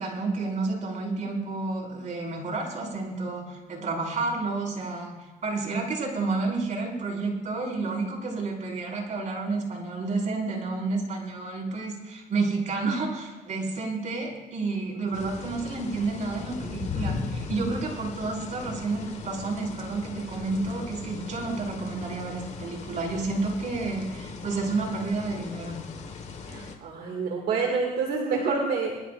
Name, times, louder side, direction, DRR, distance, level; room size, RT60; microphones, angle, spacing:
voice 1, 0.0-25.8, right 3 dB, 45° right, -2 dB, 5.4 m, -30 dB
sound 1, 15.1-26.8, left 5 dB, 40° left, 1.7 m, -38 dB
voice 2, 26.5-28.9, right 4 dB, 65° right, -1 dB, 2.4 m, -28 dB
24.5 x 12.5 x 2.6 m, 1.2 s
cardioid pair, 110°, 17 cm